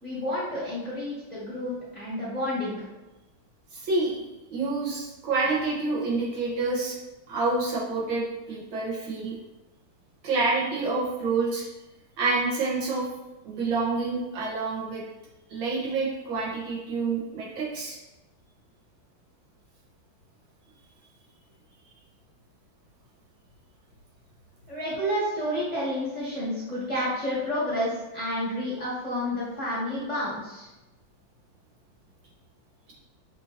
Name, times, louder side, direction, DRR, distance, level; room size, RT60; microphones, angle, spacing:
voice 1, 0.0-2.9 24.7-30.7, left 1 dB, 25° left, -9 dB, 1.0 m, -30 dB
voice 2, 3.7-7.0 7.3-9.3 10.2-11.6 12.2-13.0 13.4-15.0 15.5-18.0, right 3 dB, 75° right, -6 dB, 1.9 m, -28 dB
6.1 x 2.7 x 2.8 m, 1.0 s
omnidirectional pair, 2.2 m